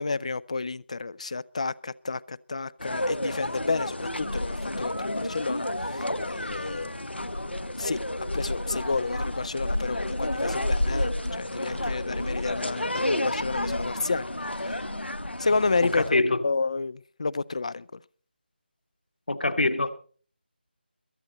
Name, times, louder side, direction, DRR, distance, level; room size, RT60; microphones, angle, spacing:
voice 1, 0.0-7.0 7.8-8.0 8.3-14.9 15.4-17.9, left 4 dB, 40° left, 0.5 m, -31 dB
sound 1, 2.8-16.1, left 1 dB, 75° left, 1.2 m, -30 dB
voice 2, 15.8-16.5 19.3-20.0, left 2 dB, 60° left, 1.6 m, -24 dB
22.5 x 8.7 x 4.1 m
figure-of-eight pair, 160°, 6 cm